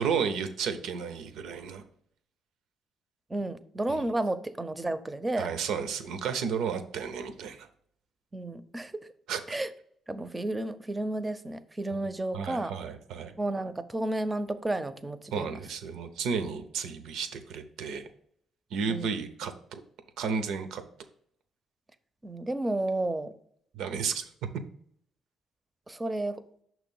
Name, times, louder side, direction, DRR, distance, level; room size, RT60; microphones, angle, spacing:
voice 1, 0.0-1.8 3.9-4.0 5.4-7.7 9.3-9.4 12.3-13.3 15.3-18.1 18.7-19.8 20.2-20.8 23.7-24.2, right 6 dB, 85° right, 9 dB, 0.6 m, -32 dB
voice 2, 3.3-5.5 8.3-9.1 9.5-9.7 10.1-12.7 13.4-15.6 18.9-19.2 22.2-23.3 25.9-26.4, right 2 dB, 20° right, 12 dB, 0.5 m, -32 dB
6.1 x 3.0 x 5.3 m, 0.66 s
cardioid pair, 90°, 0 cm